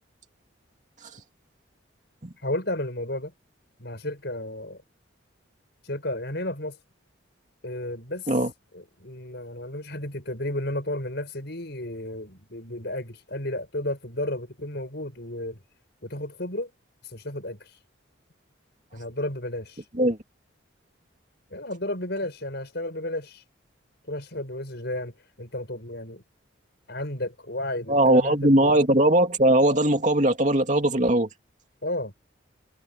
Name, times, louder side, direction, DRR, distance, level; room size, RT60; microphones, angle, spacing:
voice 1, 2.4-3.3 3.8-4.8 5.8-6.8 7.6-8.4 8.7-15.6 16.0-16.7 17.0-17.8 18.9-19.8 21.5-23.4 24.1-26.2 26.9-28.8 31.8-32.1, left 1 dB, 55° left, 7.3 m, -33 dB
voice 2, 27.9-31.3, right 1 dB, 35° right, 2.5 m, -20 dB
head